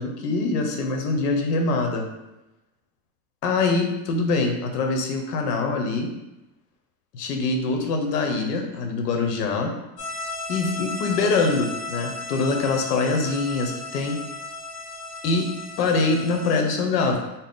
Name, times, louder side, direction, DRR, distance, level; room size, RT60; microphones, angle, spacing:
voice 1, 0.0-2.1 3.4-6.1 7.1-9.7 10.5-14.2 15.2-15.5 15.8-17.2, left 3 dB, 85° left, 3 dB, 0.8 m, -24 dB
sound 1, 10.0-16.6, left 2 dB, 35° left, 0.7 m, -35 dB
4.0 x 2.0 x 3.6 m, 0.95 s
supercardioid pair, 150°, 46 cm